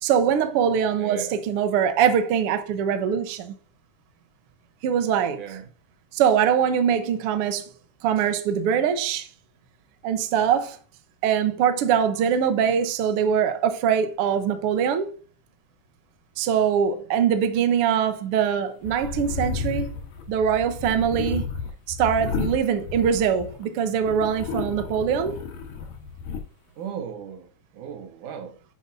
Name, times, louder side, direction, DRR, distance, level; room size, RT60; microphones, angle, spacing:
voice 1, 0.0-3.5 4.8-5.6 6.1-7.7 8.0-9.3 10.0-10.8 11.2-15.1 16.4-19.9 20.3-21.5 21.9-25.4, right 8 dB, 65° right, 1.5 m, -23 dB
voice 2, 1.0-1.3 5.4-5.7 26.8-27.5 27.7-28.6, right 7 dB, 85° right, 2.6 m, -36 dB
sound 1, 18.8-23.6 24.0-26.4, left 5 dB, 90° left, 2.8 m, -32 dB
10.5 x 7.2 x 2.6 m
omnidirectional pair, 3.5 m